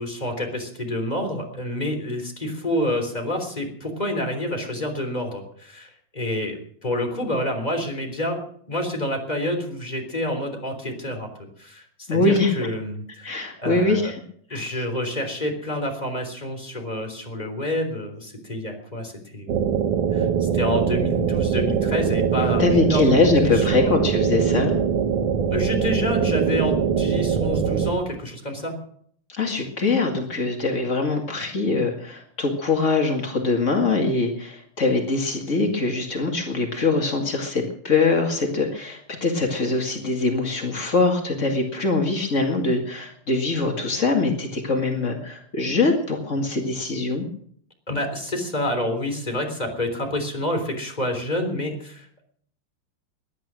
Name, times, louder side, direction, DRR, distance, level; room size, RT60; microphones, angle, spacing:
voice 1, 0.0-8.4 8.7-11.3 11.6-13.3 13.6-14.1 14.5-19.5 20.1-23.1 23.4-24.0 25.5-28.8 47.9-52.2, left 1 dB, 10° left, 4 dB, 2.8 m, -28 dB
voice 2, 12.1-12.5 13.2-14.1 14.5-14.8 22.6-24.8 29.3-47.3, left 3 dB, 80° left, 3 dB, 0.6 m, -23 dB
sound 1, 19.5-27.9, right 7 dB, 80° right, 1.3 m, -22 dB
21.0 x 11.0 x 6.3 m, 0.62 s
omnidirectional pair, 5.0 m